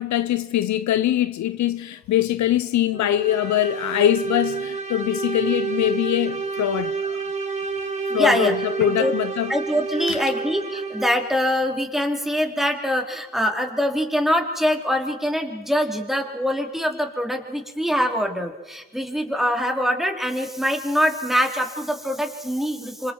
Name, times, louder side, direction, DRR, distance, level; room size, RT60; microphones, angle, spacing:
voice 1, 0.0-7.2 8.1-9.5 10.1-10.2, left 12 dB, 70° left, 0.8 m, -23 dB
sound 1, 2.9-11.3, right 5 dB, 25° right, 3.4 m, -29 dB
voice 2, 8.1-9.1 9.5-23.1, equal, ahead, 3.8 m, -24 dB
27.0 x 26.5 x 4.6 m
cardioid pair, 90°, 30 cm